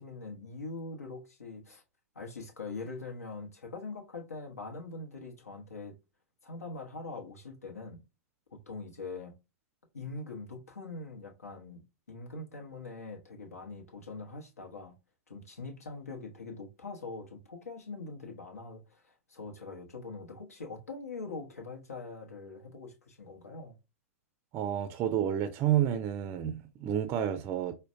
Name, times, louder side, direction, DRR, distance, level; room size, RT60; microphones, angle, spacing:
voice 1, 0.0-1.8 2.1-6.0 6.4-8.0 8.5-9.3 9.9-15.0 15.3-23.8, left 3 dB, 75° left, 0.9 m, -43 dB
voice 2, 24.5-27.7, right 10 dB, 30° right, 0.4 m, -30 dB
5.0 x 2.1 x 2.5 m
figure-of-eight pair, 100°, 8 cm